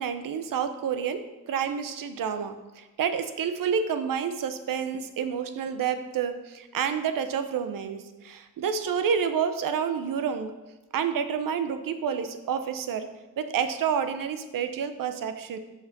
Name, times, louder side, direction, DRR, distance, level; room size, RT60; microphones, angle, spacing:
voice 1, 0.0-10.5 10.9-13.1 13.4-15.6, right 7 dB, 60° right, 9 dB, 0.8 m, -29 dB
6.2 x 5.9 x 6.0 m, 1.1 s
cardioid pair, 135°, 37 cm